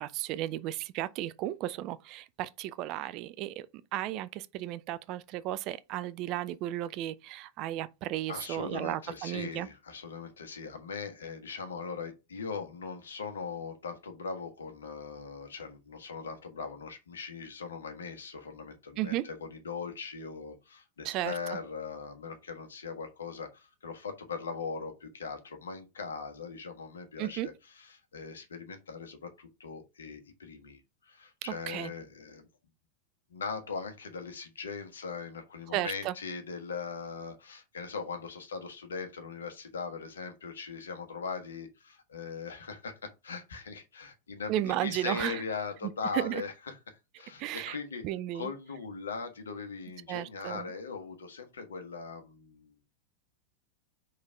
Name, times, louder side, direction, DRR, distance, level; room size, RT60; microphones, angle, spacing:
voice 1, 0.0-3.7 3.9-9.7 19.0-19.3 21.0-21.3 27.2-27.5 31.7-31.9 35.7-36.1 44.5-45.4 46.1-46.4 47.4-47.8 48.0-48.5 50.1-50.7, right 14 dB, 40° right, 0.4 m, -34 dB
voice 2, 8.3-32.5 33.3-46.8 47.2-48.0 48.3-52.7, left 5 dB, 70° left, 1.3 m, -40 dB
5.3 x 3.9 x 5.0 m
figure-of-eight pair, 90°, 0 cm